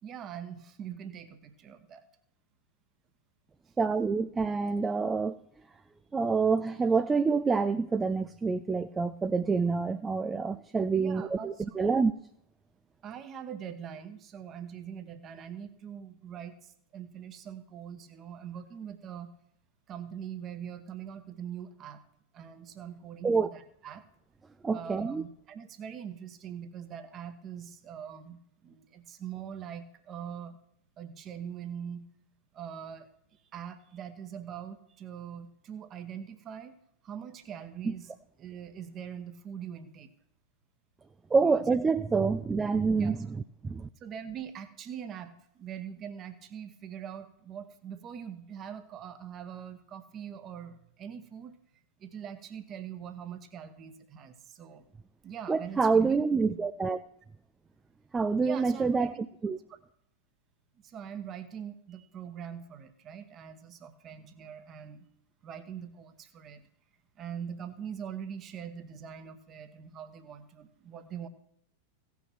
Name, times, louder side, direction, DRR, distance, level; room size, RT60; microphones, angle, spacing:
voice 1, 0.0-2.0 10.9-11.9 13.0-19.3 19.9-22.0 22.3-24.0 24.7-30.6 31.0-32.1 32.5-36.7 37.0-38.1 38.4-40.1 41.4-41.7 43.0-43.2 44.0-51.5 52.0-54.8 55.2-56.2 56.5-56.6 58.4-59.3 59.7-59.8 60.8-65.1 65.4-66.7 67.2-71.3, right 8 dB, 30° right, 9 dB, 1.2 m, -42 dB
voice 2, 3.8-5.4 6.1-12.1 23.2-23.5 24.6-25.2 37.9-38.0 41.3-43.9 55.5-57.0 58.1-59.1 59.4-59.6, right 4 dB, 15° right, 11 dB, 0.4 m, -27 dB
16.0 x 6.0 x 6.1 m, 0.72 s
figure-of-eight pair, 90°, 0 cm